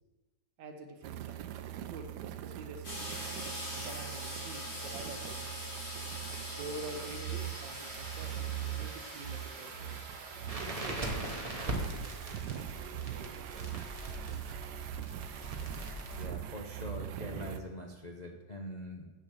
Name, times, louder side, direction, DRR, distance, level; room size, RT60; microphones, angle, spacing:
voice 1, 0.6-3.2 3.7-5.5 6.5-10.1 10.6-13.9, right 2 dB, 90° right, 5 dB, 1.8 m, -47 dB
sound 1, 1.0-17.6, right 11 dB, 75° right, 1.1 m, -42 dB
sound 2, 2.8-11.6, left 1 dB, 85° left, 3.9 m, -43 dB
Crackle, 10.5-16.3, right 1 dB, 20° right, 1.2 m, -40 dB
voice 2, 16.2-19.0, left 1 dB, 50° left, 0 dB, 0.5 m, -43 dB
8.2 x 6.8 x 6.2 m, 1.2 s
omnidirectional pair, 1.9 m